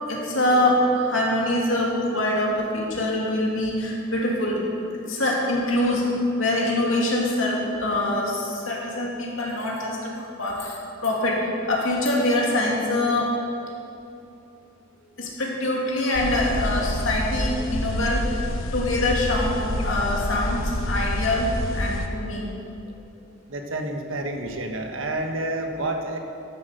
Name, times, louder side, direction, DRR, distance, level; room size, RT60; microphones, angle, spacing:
voice 1, 0.1-4.6 5.1-6.1 6.4-10.1 10.4-10.7 11.0-13.3 15.2-18.4 18.7-22.5, left 1 dB, 70° left, -2 dB, 2.5 m, -24 dB
sound 1, 16.1-22.1, left 1 dB, 90° left, 1.1 m, -28 dB
voice 2, 23.5-26.2, right 1 dB, 75° right, 4 dB, 1.3 m, -29 dB
13.0 x 7.7 x 6.6 m, 2.7 s
head